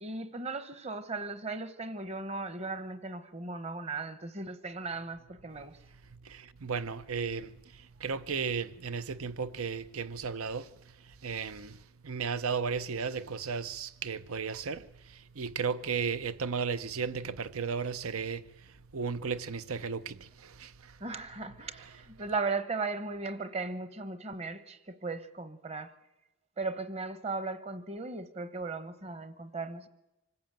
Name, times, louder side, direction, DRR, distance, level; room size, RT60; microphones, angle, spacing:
voice 1, 0.0-5.8 21.0-25.9 26.6-29.9, right 3 dB, 30° right, 1.0 m, -37 dB
voice 2, 6.1-21.0 21.8-21.9, right 5 dB, 85° right, 0.7 m, -35 dB
25.0 x 14.5 x 9.0 m
head